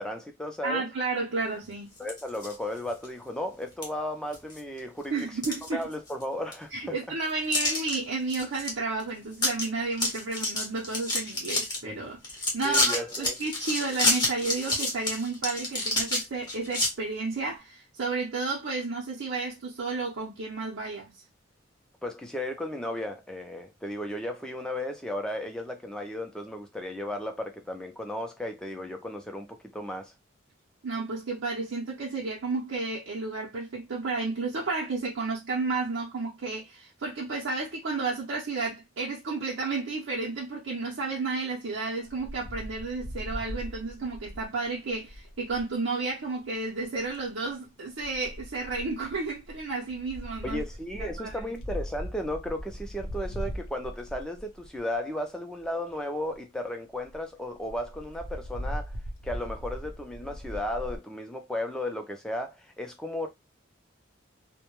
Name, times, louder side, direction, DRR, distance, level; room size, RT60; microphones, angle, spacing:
voice 1, 0.0-0.9 2.0-5.1 5.7-6.9 12.6-13.4 22.0-30.1 50.4-58.9 59.2-63.3, left 1 dB, 5° left, 0.4 m, -34 dB
voice 2, 0.6-1.9 5.1-5.8 6.7-21.2 30.8-50.6 51.0-51.4, right 3 dB, 85° right, 0.6 m, -32 dB
sound 1, 2.0-2.5 3.0-3.1 3.8-3.9 4.3-4.8 5.2-6.2 6.5-6.6 7.5-7.9 8.3-8.7 9.0-9.1 9.3-9.6 9.9-11.8 12.2-16.9, left 2 dB, 20° left, 0.7 m, -28 dB
Wind, 42.1-45.7 46.8-47.3 48.0-55.0 55.6-55.7 55.9-56.0 56.3-56.4 56.7-56.8 57.0-57.2 57.6-61.0, equal, 85° left, 0.6 m, -39 dB
2.2 x 2.1 x 2.9 m
head